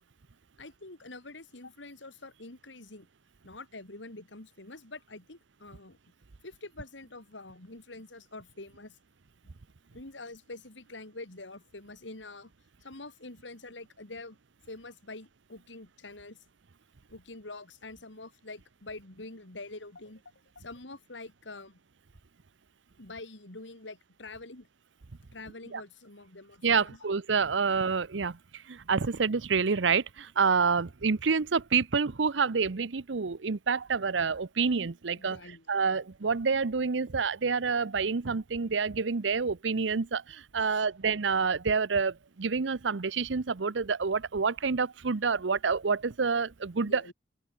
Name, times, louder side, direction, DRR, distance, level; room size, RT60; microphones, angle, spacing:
voice 1, 0.6-3.1 3.4-6.0 6.4-9.0 9.9-12.5 12.8-14.4 14.7-16.4 17.1-20.2 20.5-21.8 23.0-24.7 25.3-27.1 35.1-36.0 40.6-40.9 46.8-47.1, left 2 dB, 80° left, 3.3 m, -46 dB
voice 2, 26.6-28.4 28.7-35.4 35.7-47.0, right 5 dB, 80° right, 0.8 m, -28 dB
open air
head